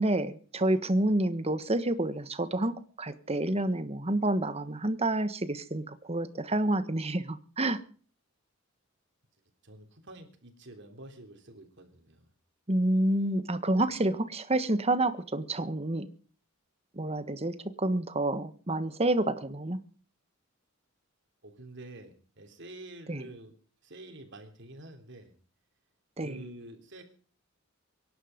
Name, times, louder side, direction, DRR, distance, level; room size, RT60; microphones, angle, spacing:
voice 1, 0.0-7.8 12.7-16.1 17.0-19.8 23.1-23.2 26.2-26.4, right 1 dB, 30° right, 1.4 m, -29 dB
voice 2, 9.6-12.2 13.8-14.0 21.4-23.5 23.8-25.3 26.2-27.0, right 1 dB, 60° right, 3.4 m, -48 dB
23.5 x 11.0 x 5.2 m
head